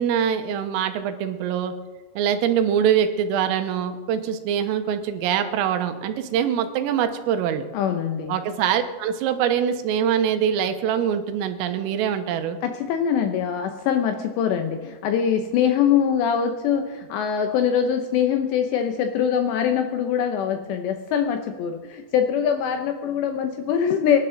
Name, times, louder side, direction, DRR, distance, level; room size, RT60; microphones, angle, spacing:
voice 1, 0.0-1.7 2.2-7.7 8.3-12.6, right 8 dB, 90° right, 8 dB, 3.6 m, -23 dB
voice 2, 7.7-8.4 12.6-24.2, left 8 dB, 80° left, 6 dB, 2.6 m, -23 dB
24.0 x 11.5 x 3.8 m, 1.3 s
omnidirectional pair, 5.9 m